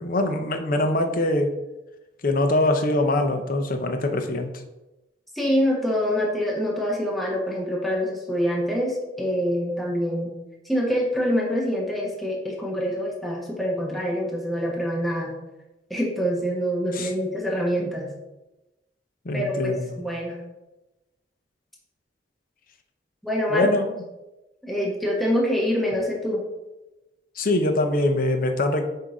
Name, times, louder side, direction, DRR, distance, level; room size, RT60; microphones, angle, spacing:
voice 1, 0.0-1.5 2.2-4.5 16.9-17.1 19.2-19.9 23.5-23.9 27.4-28.8, left 2 dB, 50° left, 5 dB, 0.7 m, -23 dB
voice 2, 5.3-10.3 10.6-15.3 15.9-18.1 19.3-20.4 23.2-23.7 24.6-26.4, equal, ahead, -4 dB, 1.1 m, -25 dB
7.3 x 2.8 x 4.8 m, 1.0 s
head